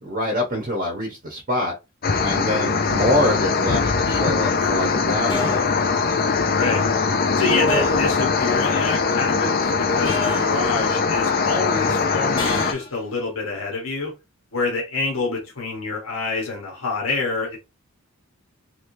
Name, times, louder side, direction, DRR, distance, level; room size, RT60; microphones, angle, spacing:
voice 1, 0.0-1.7 2.2-5.7, left 1 dB, 40° right, 1.0 m, -25 dB
sound 1, 2.0-12.7, left 4 dB, 45° left, 0.4 m, -21 dB
sound 2, 4.0-4.3 5.3-5.8 7.7-8.2 10.0-10.7 12.4-13.0, left 2 dB, 15° left, 1.2 m, -29 dB
voice 2, 7.4-14.1 14.5-17.6, left 3 dB, 70° left, 1.2 m, -27 dB
3.2 x 3.1 x 2.6 m
head